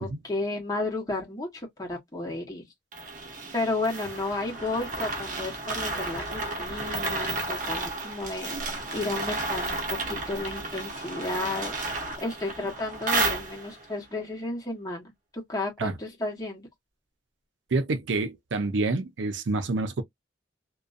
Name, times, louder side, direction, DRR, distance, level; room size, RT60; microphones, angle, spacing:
voice 1, 0.0-2.6 3.5-11.7 12.2-16.7, left 2 dB, 20° left, 1.0 m, -33 dB
sound 1, 2.9-13.9, right 2 dB, 45° right, 0.7 m, -32 dB
voice 2, 17.7-20.0, right 3 dB, 90° right, 0.5 m, -27 dB
2.5 x 2.2 x 2.4 m
head